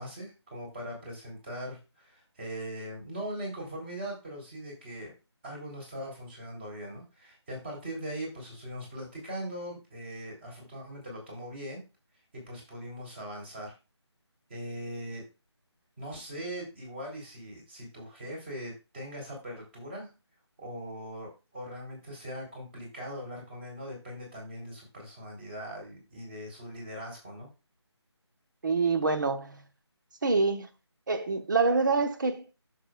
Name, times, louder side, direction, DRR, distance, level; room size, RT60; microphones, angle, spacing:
voice 1, 0.0-5.1 5.4-11.8 12.3-13.7 14.5-15.2 16.0-20.1 20.6-27.5, equal, 25° right, 3.8 m, -40 dB
voice 2, 28.6-29.6 30.2-30.7 31.1-32.6, right 4 dB, 45° right, 0.9 m, -26 dB
11.5 x 6.7 x 2.4 m
figure-of-eight pair, 160°, 15 cm